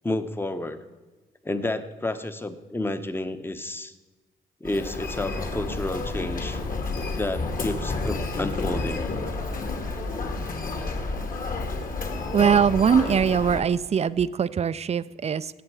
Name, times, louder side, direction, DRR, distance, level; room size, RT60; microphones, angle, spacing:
voice 1, 0.0-0.8 1.4-3.9 4.6-6.6 7.2-9.1, left 2 dB, 10° left, 10 dB, 0.9 m, -30 dB
Human voice, 4.6-13.6, left 3 dB, 45° left, 1.8 m, -30 dB
voice 2, 12.3-15.6, right 7 dB, 35° right, 16 dB, 0.4 m, -22 dB
18.5 x 7.6 x 4.7 m, 1.2 s
cardioid pair, 90°, 20 cm